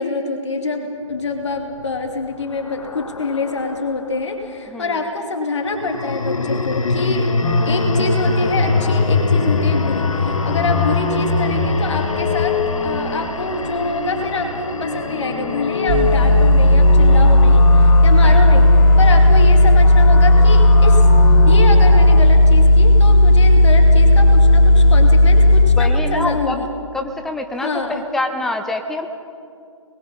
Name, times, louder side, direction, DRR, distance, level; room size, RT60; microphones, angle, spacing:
voice 1, 0.0-7.3 7.6-18.7 19.0-21.1 21.5-26.7 27.6-28.0, left 3 dB, 60° left, 4 dB, 2.7 m, -25 dB
sound 1, 1.6-4.1 5.7-18.0, left 3 dB, 75° left, 1.3 m, -23 dB
voice 2, 4.7-5.0 18.2-18.6 25.8-26.6 26.9-29.1, left 2 dB, ahead, 7 dB, 0.6 m, -26 dB
sound 2, 7.4-22.2, left 4 dB, 15° left, 2.7 m, -26 dB
sound 3, 15.9-25.6, left 1 dB, 40° right, 2.4 m, -11 dB
28.5 x 21.0 x 5.6 m, 2.3 s
figure-of-eight pair, 140°, 17 cm